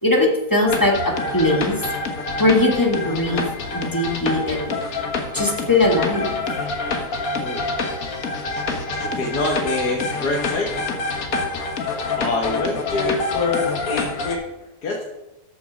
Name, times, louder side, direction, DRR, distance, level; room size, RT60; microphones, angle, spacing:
voice 1, 0.0-1.8 2.4-3.4 3.7-4.7 5.3-6.4, left 2 dB, 15° left, 1 dB, 1.5 m, -20 dB
sound 1, 0.7-14.4, left 3 dB, 60° left, 1.7 m, -26 dB
voice 2, 9.0-10.8 12.2-14.4 14.8-15.0, left 3 dB, 80° left, -2 dB, 2.0 m, -25 dB
13.5 x 6.6 x 5.1 m, 0.98 s
omnidirectional pair, 1.7 m